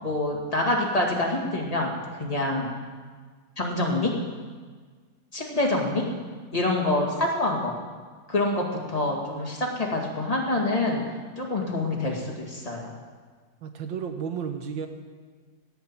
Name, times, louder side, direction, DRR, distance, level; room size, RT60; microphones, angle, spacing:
voice 1, 0.0-2.7 3.6-4.1 5.3-6.0 6.5-7.7 8.3-11.0 11.4-12.9, left 2 dB, 20° left, -1 dB, 2.2 m, -26 dB
voice 2, 13.6-14.9, right 7 dB, 90° right, 6 dB, 1.9 m, -32 dB
17.0 x 5.8 x 8.8 m, 1.5 s
omnidirectional pair, 2.0 m